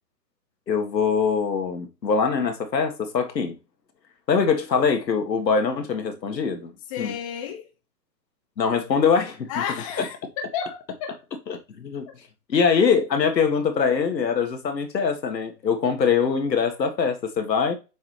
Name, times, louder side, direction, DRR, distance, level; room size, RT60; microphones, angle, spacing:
voice 1, 0.7-3.5 4.3-6.7 7.0-7.1 8.6-9.5 10.0-10.1 11.5-12.1 12.5-17.8, left 6 dB, 85° left, 1.8 m, -23 dB
voice 2, 6.9-7.7 9.5-11.2, left 7 dB, 20° left, 0.8 m, -32 dB
7.3 x 4.9 x 3.3 m
hypercardioid pair, 150°, 49 cm